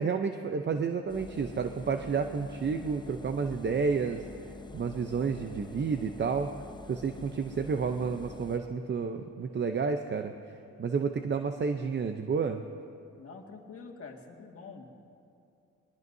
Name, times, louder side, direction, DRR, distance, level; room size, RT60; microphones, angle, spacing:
voice 1, 0.0-4.2 4.7-6.5 6.9-10.3 10.8-12.6, right 5 dB, 35° right, 7 dB, 0.7 m, -30 dB
Engine, 1.1-8.6, left 3 dB, 15° left, 0.6 m, -46 dB
voice 2, 13.2-14.9, left 4 dB, 50° left, 1 dB, 2.0 m, -46 dB
22.0 x 20.0 x 2.7 m, 2.6 s
cardioid pair, 90°, 30 cm